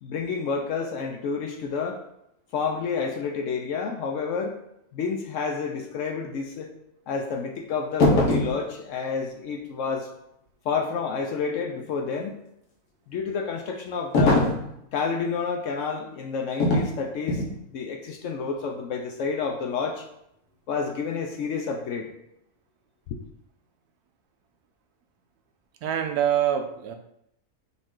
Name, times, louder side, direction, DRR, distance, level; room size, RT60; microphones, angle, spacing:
voice 1, 0.0-2.0 2.5-4.6 4.9-6.7 7.1-10.1 10.6-12.4 13.1-14.5 14.9-20.0 20.7-22.1, left 5 dB, 70° left, 3 dB, 0.8 m, -29 dB
sound 1, 8.0-8.6 14.1-14.7 16.6-16.9 17.3-17.6, left 2 dB, 85° left, 1.4 m, -21 dB
voice 2, 25.8-26.9, right 10 dB, 80° right, 5 dB, 1.1 m, -25 dB
5.8 x 2.5 x 3.6 m, 0.77 s
omnidirectional pair, 1.6 m